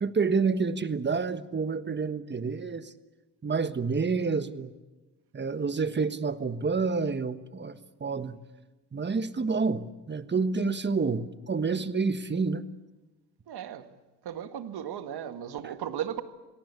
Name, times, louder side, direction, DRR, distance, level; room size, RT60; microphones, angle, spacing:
voice 1, 0.0-2.9 3.4-4.7 5.3-8.4 8.9-12.7, right 4 dB, 25° right, 12 dB, 1.4 m, -28 dB
voice 2, 13.5-13.9 14.2-16.2, right 10 dB, 60° right, 9 dB, 2.1 m, -36 dB
27.0 x 18.0 x 8.4 m, 1.2 s
supercardioid pair, 85°, 45 cm